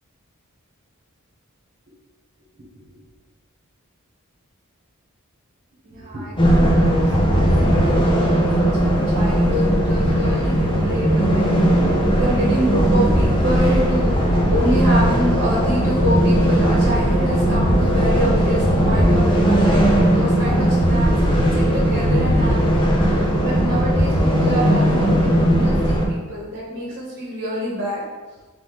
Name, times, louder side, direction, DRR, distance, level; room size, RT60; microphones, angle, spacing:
voice 1, 5.8-11.4 12.0-28.0, equal, 45° right, -6 dB, 1.2 m, -27 dB
sound 1, 6.4-26.1, equal, 25° left, 0.6 m, -17 dB
3.7 x 3.3 x 3.9 m, 1.3 s
head